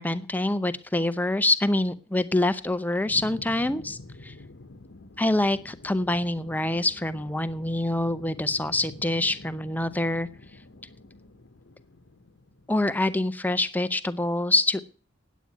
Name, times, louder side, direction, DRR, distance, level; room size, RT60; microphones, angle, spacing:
voice 1, 0.0-4.3 5.2-10.3 12.7-14.8, left 2 dB, 10° left, 12 dB, 0.6 m, -25 dB
sound 1, 3.1-12.9, left 2 dB, 60° left, 1.0 m, -47 dB
9.3 x 9.1 x 9.4 m, 0.40 s
head